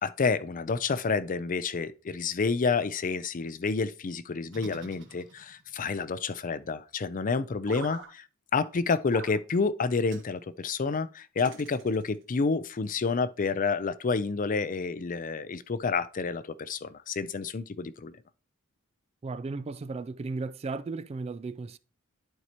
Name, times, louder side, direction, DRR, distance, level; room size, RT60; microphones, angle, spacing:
voice 1, 0.0-8.2 8.5-18.2, left 4 dB, 40° left, 0.5 m, -29 dB
sound 1, 4.5-5.7 7.6-8.1 9.1-9.4 10.1-10.3 11.4-12.2, right 4 dB, 60° right, 1.4 m, -45 dB
voice 2, 19.2-21.8, right 3 dB, 30° right, 0.3 m, -35 dB
11.0 x 4.7 x 2.9 m
head